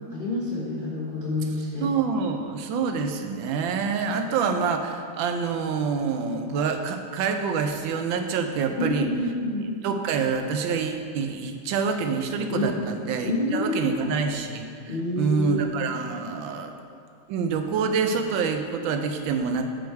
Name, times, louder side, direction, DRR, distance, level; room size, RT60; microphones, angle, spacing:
voice 1, 0.1-1.9 8.8-9.7 12.5-12.8 13.2-14.1 14.9-15.6, left 2 dB, 45° left, -5 dB, 0.7 m, -28 dB
voice 2, 1.8-9.1 9.8-16.7 17.3-19.7, right 5 dB, 80° right, 6 dB, 1.4 m, -26 dB
8.4 x 4.8 x 4.6 m, 2.2 s
omnidirectional pair, 2.1 m